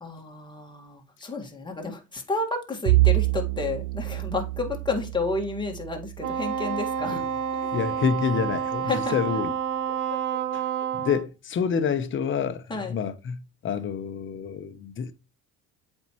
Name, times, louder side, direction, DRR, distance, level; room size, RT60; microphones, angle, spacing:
voice 1, 0.0-7.2 7.6-7.7 8.9-9.1 10.1-10.2 12.7-13.0, left 3 dB, 15° left, 1.8 m, -31 dB
Bowed string instrument, 2.8-7.4, right 20 dB, 85° right, 0.5 m, -27 dB
Wind instrument woodwind instrument, 6.2-11.3, right 8 dB, 65° right, 0.9 m, -29 dB
voice 2, 7.7-9.5 10.5-10.7 10.9-15.1, left 6 dB, 40° left, 0.9 m, -28 dB
7.8 x 4.5 x 3.1 m
cardioid pair, 100°, 32 cm